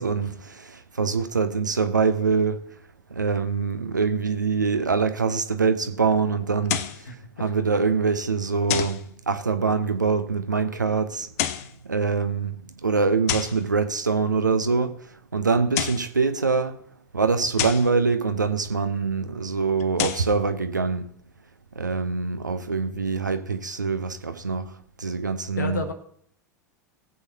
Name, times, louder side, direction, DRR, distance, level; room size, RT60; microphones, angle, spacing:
voice 1, 0.0-2.6 3.1-6.8 7.4-9.0 9.3-11.3 11.9-12.6 12.8-14.9 15.3-16.8 17.1-21.1 21.8-24.7 25.0-25.8, right 4 dB, 85° right, 0.8 m, -24 dB
sound 1, 6.7-7.0 8.7-9.0 11.2-11.7 13.3-13.6 15.6-16.1 17.6-17.9 19.8-20.3, left 11 dB, 55° left, 0.7 m, -28 dB
voice 2, 7.0-7.5 25.6-25.9, left 3 dB, 75° left, 1.3 m, -31 dB
19.0 x 8.1 x 2.8 m
figure-of-eight pair, 85°, 10 cm